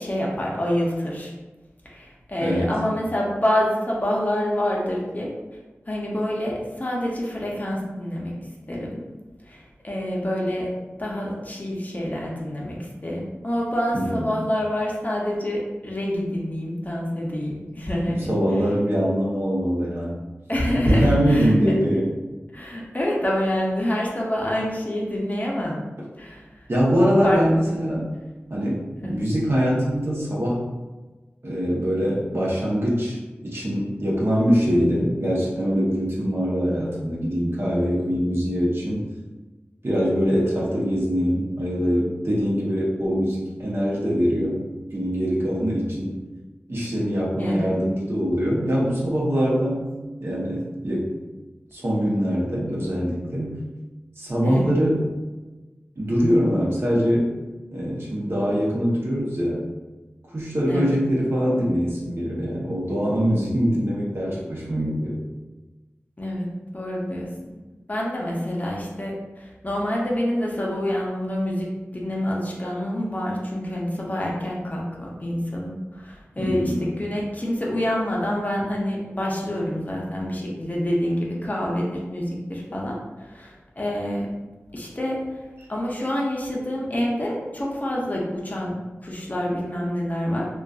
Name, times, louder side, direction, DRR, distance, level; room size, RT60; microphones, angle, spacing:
voice 1, 0.0-1.3 1.9-5.3 5.9-8.3 8.7-9.0 9.5-10.7 11.0-18.3 20.5-21.7 22.5-25.8 26.2-26.5 27.2-27.4 29.0-29.1 40.0-40.4 47.4-47.8 54.4-54.7 60.7-61.0 66.2-67.5 67.9-84.3 84.7-85.3 85.7-88.7 89.0-90.5, equal, 35° left, -3 dB, 0.6 m, -27 dB
voice 2, 2.4-2.7 13.9-14.3 18.1-20.2 20.9-22.1 26.7-28.1 28.5-30.7 31.4-33.2 33.4-39.0 39.8-44.6 44.9-46.2 46.7-49.9 50.2-51.2 51.7-53.6 54.2-55.0 56.0-57.3 57.7-59.6 60.3-65.2 76.4-76.8, equal, 55° right, -5 dB, 0.8 m, -23 dB
2.5 x 2.3 x 2.3 m, 1.2 s
wide cardioid pair, 40°, 5 cm